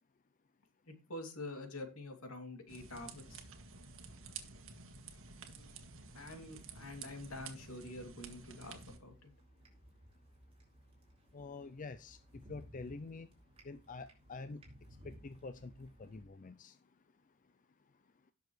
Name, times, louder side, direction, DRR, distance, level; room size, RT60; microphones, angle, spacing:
voice 1, 0.9-3.4 5.6-5.7 6.1-9.3, left 2 dB, 75° left, 4 dB, 2.7 m, -47 dB
sound 1, 2.7-9.0, right 5 dB, 65° right, 1.7 m, -51 dB
sound 2, 8.6-16.2, equal, 30° right, 4.2 m, -59 dB
voice 2, 11.3-12.2 12.5-13.3 13.7-14.6 15.0-16.7, left 3 dB, 35° left, 11 dB, 0.4 m, -47 dB
17.0 x 6.9 x 3.2 m, 0.30 s
head